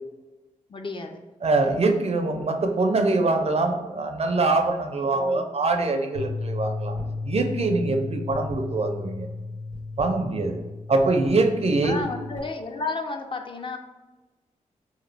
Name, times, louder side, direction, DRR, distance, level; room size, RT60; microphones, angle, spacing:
voice 1, 0.7-1.2 5.1-5.4 11.8-13.8, left 3 dB, 35° left, 5 dB, 0.4 m, -32 dB
voice 2, 1.4-7.0 7.3-9.3 10.0-10.6 10.9-12.0, right 3 dB, 45° right, 5 dB, 0.4 m, -23 dB
Bass guitar, 6.2-12.4, left 3 dB, 65° left, 0.8 m, -34 dB
sound 1, 6.8-7.3 7.5-9.1 9.6-10.7 11.0-11.4 11.9-12.7, equal, 80° left, 1.3 m, -44 dB
2.9 x 2.2 x 3.2 m, 1.1 s
cardioid pair, 50°, 14 cm